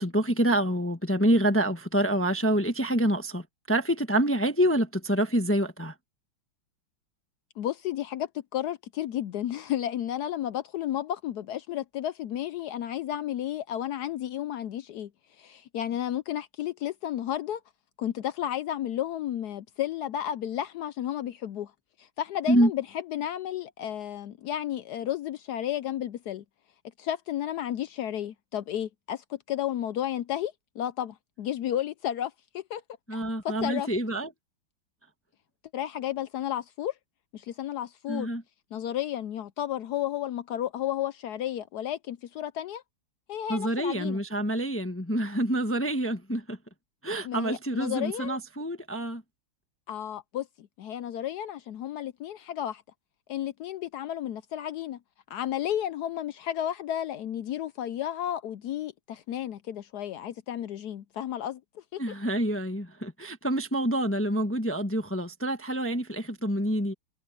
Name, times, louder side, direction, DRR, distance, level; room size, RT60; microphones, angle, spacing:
voice 1, 0.0-5.9 22.5-22.7 33.1-34.3 38.1-38.4 43.5-46.6 47.0-49.2 62.0-66.9, right 1 dB, 10° left, 0.7 m, -27 dB
voice 2, 7.6-15.1 15.4-17.6 18.0-21.7 22.0-26.4 27.0-32.8 33.1-33.9 35.7-36.9 37.3-38.3 38.7-42.8 43.3-44.2 47.2-48.4 49.9-52.8 53.3-55.0 55.3-62.0, left 11 dB, 75° left, 0.9 m, -32 dB
omnidirectional pair, 2.3 m